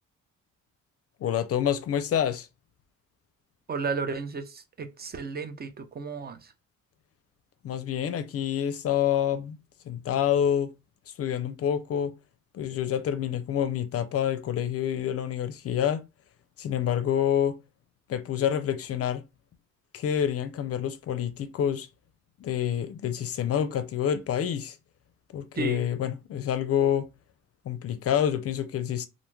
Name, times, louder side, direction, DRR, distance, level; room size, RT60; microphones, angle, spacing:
voice 1, 1.2-2.5 7.6-9.6 9.9-10.7 11.2-12.1 12.5-16.0 16.6-17.6 18.1-19.2 19.9-21.9 22.4-24.8 25.3-27.1 27.7-29.1, left 9 dB, 50° left, 0.4 m, -27 dB
voice 2, 3.7-6.5 25.6-25.8, right 4 dB, 35° right, 0.4 m, -33 dB
2.5 x 2.2 x 3.1 m
cardioid pair, 90°, 30 cm